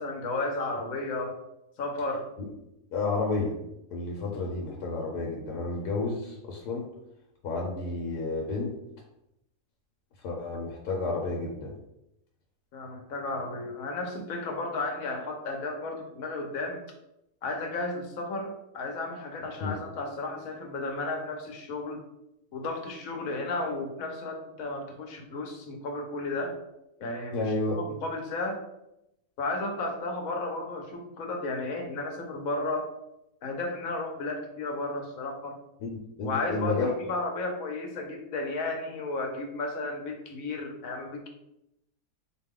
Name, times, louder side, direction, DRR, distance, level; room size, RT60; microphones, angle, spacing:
voice 1, 0.0-1.3 1.8-2.3 10.5-10.6 12.7-16.8 17.4-22.0 22.5-26.6 27.0-28.6 29.4-32.9 33.4-35.6 36.2-41.3, left 2 dB, 65° left, 3 dB, 1.1 m, -33 dB
voice 2, 2.9-3.5 3.9-6.9 7.4-8.7 10.2-11.7 19.6-19.7 27.3-27.8 35.8-36.9, left 3 dB, 85° left, -1 dB, 1.2 m, -31 dB
4.4 x 2.3 x 3.6 m, 0.85 s
omnidirectional pair, 1.6 m